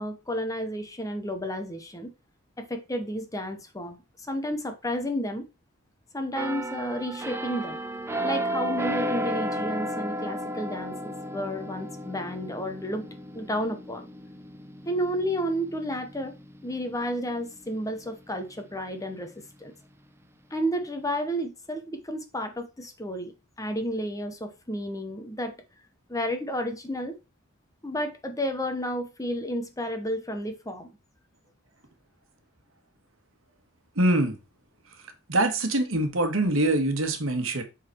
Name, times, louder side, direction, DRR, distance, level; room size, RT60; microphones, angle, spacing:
voice 1, 0.0-2.1 2.6-4.0 4.3-5.5 6.1-7.8 8.2-13.1 13.3-14.1 14.8-16.3 16.6-19.3 19.6-19.7 20.5-25.6 26.1-27.1 27.8-30.9, equal, 15° left, 1.0 m, -31 dB
sound 1, 6.4-17.9 18.3-18.6, equal, 10° right, 0.6 m, -34 dB
voice 2, 33.9-34.4 35.3-37.6, right 1 dB, 70° right, 1.6 m, -24 dB
8.1 x 4.1 x 4.5 m
head